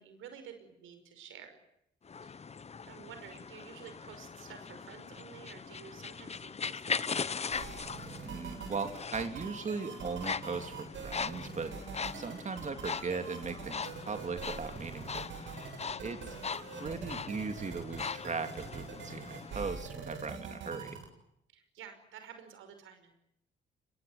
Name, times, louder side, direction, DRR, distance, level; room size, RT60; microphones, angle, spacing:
voice 1, 0.0-1.6 2.2-2.4 2.9-7.6 15.8-16.0 21.5-23.1, right 8 dB, 85° right, 8 dB, 5.6 m, -51 dB
sound 1, 2.1-19.8, left 5 dB, 30° left, 1.0 m, -40 dB
sound 2, 7.5-21.0, right 5 dB, 70° right, 7.6 m, -44 dB
voice 2, 8.2-11.7 12.1-15.3 16.0-16.4 16.8-21.0, right 4 dB, 35° right, 8 dB, 3.3 m, -38 dB
26.0 x 22.0 x 9.7 m, 0.78 s
cardioid pair, 90°, 20 cm